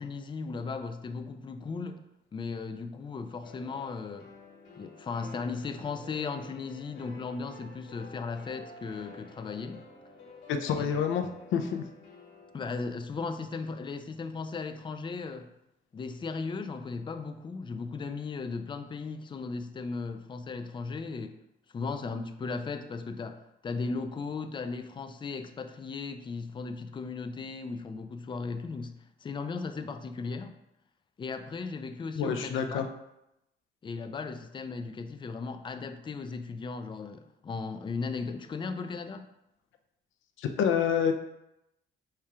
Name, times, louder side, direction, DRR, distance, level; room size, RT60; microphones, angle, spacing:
voice 1, 0.0-2.0 2.3-4.3 4.8-9.8 10.7-11.4 12.5-15.5 15.9-21.3 21.7-30.6 31.2-32.9 33.8-39.3, left 4 dB, 25° left, 8 dB, 0.4 m, -37 dB
sound 1, 3.4-13.3, left 3 dB, 60° left, 1.4 m, -51 dB
voice 2, 10.5-11.2 11.5-11.8 32.2-32.9 40.4-41.1, left 7 dB, 75° left, 6 dB, 0.5 m, -27 dB
4.3 x 2.4 x 4.7 m, 0.86 s
cardioid pair, 90°, 20 cm